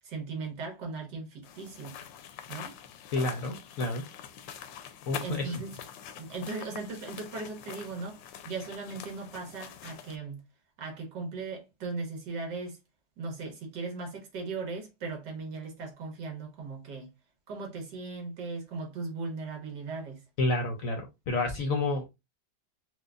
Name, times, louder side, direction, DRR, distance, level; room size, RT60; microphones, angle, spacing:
voice 1, 0.0-2.0 2.5-2.7 5.2-5.7 6.2-8.2 8.5-10.4 10.8-12.8 13.2-17.1 17.5-20.2, right 3 dB, 75° right, 1.7 m, -38 dB
sound 1, 1.4-10.2, left 9 dB, 85° left, 1.3 m, -45 dB
voice 2, 3.1-4.0 5.1-5.5 20.4-22.1, left 2 dB, 65° left, 0.9 m, -30 dB
4.6 x 2.3 x 2.4 m
omnidirectional pair, 2.0 m